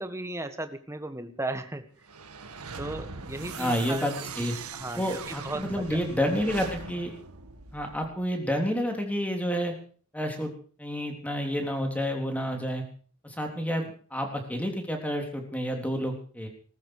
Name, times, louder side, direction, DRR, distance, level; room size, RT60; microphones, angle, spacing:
voice 1, 0.0-1.8 2.8-4.1 4.4-6.0, right 2 dB, 15° right, 9 dB, 1.5 m, -36 dB
sound 1, 2.0-8.3, right 4 dB, 90° right, 1.7 m, -40 dB
voice 2, 3.6-4.5 5.0-7.1 7.7-9.8 10.1-10.5 10.8-12.8 13.2-16.5, equal, 5° left, 2 dB, 3.5 m, -29 dB
20.0 x 14.0 x 4.9 m, 0.43 s
head